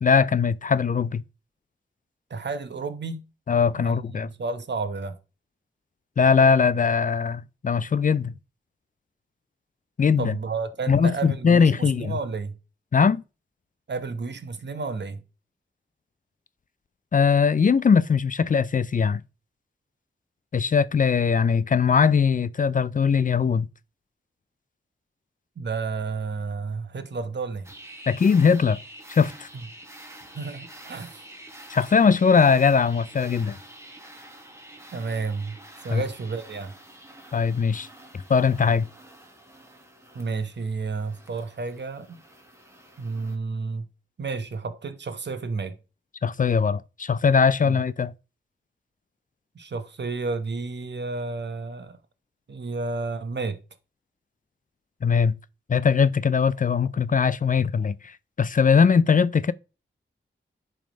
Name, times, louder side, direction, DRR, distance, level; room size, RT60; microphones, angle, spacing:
voice 1, 0.0-1.2 3.5-4.3 6.2-8.3 10.0-10.4 10.9-12.2 12.9-13.2 17.1-19.2 20.5-23.7 28.1-28.8 29.1-29.5 31.7-33.6 35.9-36.0 37.3-37.9 38.3-38.9 46.2-48.1 55.0-55.3 55.7-59.5, left 6 dB, 40° left, 0.4 m, -20 dB
voice 2, 2.3-3.2 3.8-5.2 10.2-12.6 13.9-15.2 25.6-27.7 30.3-31.2 34.9-35.6 35.8-36.7 40.1-42.2 43.0-43.9 44.2-45.8 47.6-47.8 49.5-52.0 52.5-53.6, right 4 dB, 60° right, 1.0 m, -31 dB
sound 1, 27.6-43.4, right 1 dB, 15° right, 1.5 m, -47 dB
10.5 x 3.6 x 5.1 m
wide cardioid pair, 100°, 20 cm